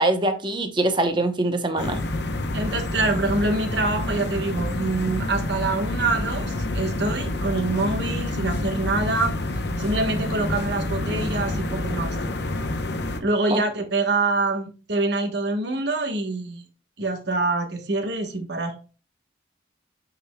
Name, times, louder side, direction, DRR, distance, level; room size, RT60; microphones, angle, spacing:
voice 1, 0.0-2.0 13.5-13.6, right 2 dB, 25° right, 0.7 m, -23 dB
sound 1, 1.8-13.2, left 1 dB, 60° left, 0.7 m, -28 dB
voice 2, 2.5-9.3 9.8-12.2 13.2-16.6 17.0-18.7, right 2 dB, 60° right, 1.1 m, -25 dB
8.7 x 5.0 x 2.2 m
head